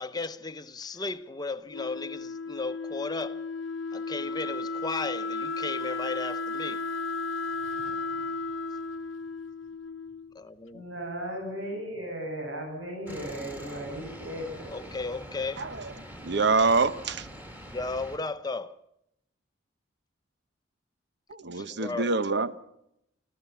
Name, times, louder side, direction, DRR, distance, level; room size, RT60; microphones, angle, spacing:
voice 1, 0.0-3.4 3.9-6.8 10.3-10.8 14.7-15.7 17.7-18.8 21.5-22.1, left 3 dB, 20° left, 0.9 m, -35 dB
Wind instrument woodwind instrument, 1.7-10.4, left 3 dB, 75° left, 0.8 m, -34 dB
voice 2, 7.6-8.1 10.7-14.7, right 1 dB, 85° right, 7.6 m, -37 dB
sound 1, 13.1-18.2, equal, 10° right, 2.3 m, -44 dB
voice 3, 15.6-15.9 16.2-17.3 21.3-22.6, right 4 dB, 60° right, 1.0 m, -26 dB
26.5 x 15.0 x 7.1 m
head